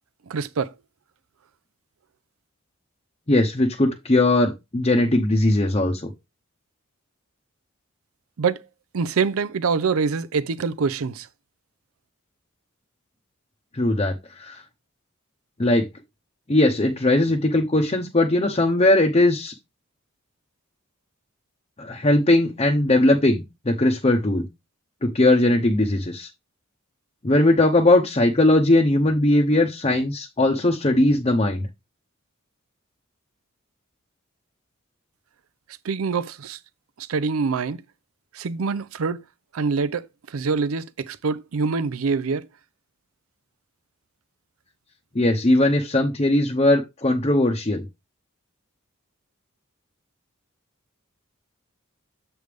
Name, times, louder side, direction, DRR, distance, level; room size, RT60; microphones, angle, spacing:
voice 1, 0.3-0.7 8.4-8.7 8.9-11.3 35.8-36.6 37.0-37.8 38.3-39.2 39.5-42.5, right 5 dB, 75° right, 0.5 m, -25 dB
voice 2, 3.3-6.1 13.7-14.6 15.6-15.9 16.5-19.5 21.8-24.5 25.0-26.3 27.2-31.6 45.1-47.8, left 1 dB, 30° left, 0.8 m, -19 dB
7.9 x 3.3 x 5.1 m
head